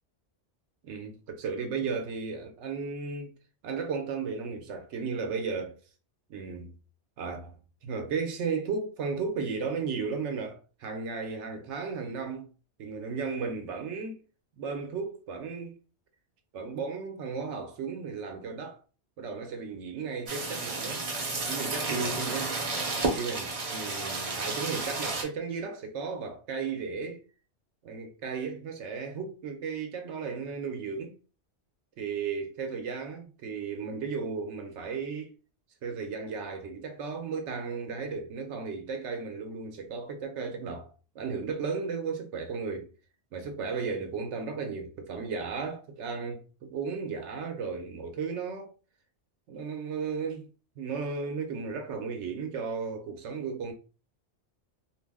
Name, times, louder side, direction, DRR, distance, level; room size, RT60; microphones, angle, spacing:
voice 1, 0.8-3.3 3.6-5.8 6.3-6.7 7.2-7.5 7.8-12.5 12.8-14.2 14.6-15.8 16.5-18.8 19.2-21.0 21.4-22.6 23.1-27.2 27.8-31.1 32.0-35.3 35.8-42.9 43.3-48.7 49.5-50.5 50.8-53.7, right 5 dB, 85° right, 0.9 m, -35 dB
sound 1, 20.3-25.2, right 3 dB, 40° right, 0.6 m, -32 dB
2.4 x 2.0 x 3.3 m
omnidirectional pair, 1.2 m